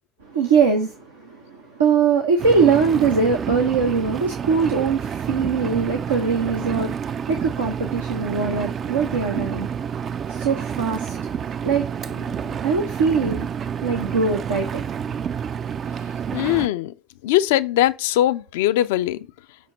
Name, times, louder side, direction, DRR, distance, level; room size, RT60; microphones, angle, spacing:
voice 1, 0.2-9.7 10.3-11.2 11.6-11.9 12.6-13.5 13.8-14.8, right 5 dB, 90° right, 0.7 m, -22 dB
Engine, 2.4-16.7, right 7 dB, 45° right, 0.3 m, -29 dB
voice 2, 16.3-16.9 17.2-19.3, left 14 dB, 75° left, 0.3 m, -20 dB
7.6 x 2.8 x 5.2 m
hypercardioid pair, 60°, 0 cm